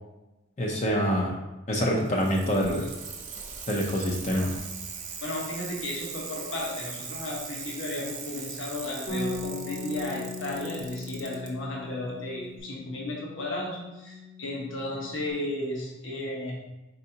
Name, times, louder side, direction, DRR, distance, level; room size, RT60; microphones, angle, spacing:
voice 1, 0.6-1.3 1.7-2.9 3.7-4.5, equal, 35° left, -1 dB, 0.6 m, -26 dB
Bicycle, 1.9-11.5 12.6-12.7, right 6 dB, 40° right, 0.6 m, -40 dB
voice 2, 5.2-16.6, left 2 dB, 70° left, -2 dB, 1.0 m, -34 dB
Bass guitar, 9.1-15.3, left 3 dB, 90° left, 1.5 m, -39 dB
4.5 x 4.0 x 2.8 m, 1.0 s
head